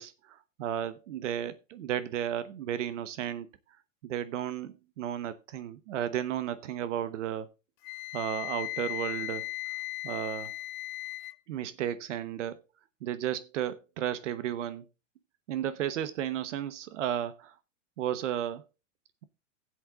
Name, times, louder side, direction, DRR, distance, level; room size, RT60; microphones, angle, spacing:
voice 1, 0.0-3.5 4.0-7.5 8.1-9.5 10.0-10.5 11.5-12.6 13.0-14.9 15.5-17.5 18.0-18.6, right 10 dB, 70° right, 1.0 m, -33 dB
Wind instrument woodwind instrument, 7.8-11.3, left 17 dB, 40° left, 0.4 m, -37 dB
17.5 x 7.8 x 2.4 m
supercardioid pair, 155°, 38 cm